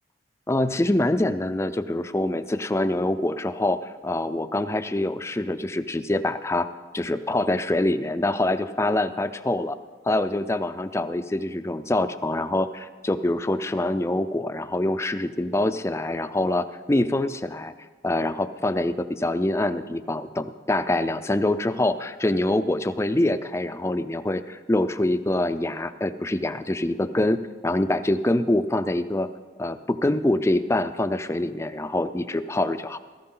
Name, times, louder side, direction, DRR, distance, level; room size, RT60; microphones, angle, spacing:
voice 1, 0.5-6.7 6.9-9.8 10.1-17.7 18.0-27.4 27.6-29.3 29.6-33.0, left 1 dB, 15° left, 11 dB, 0.4 m, -25 dB
16.5 x 14.5 x 3.8 m, 1.5 s
head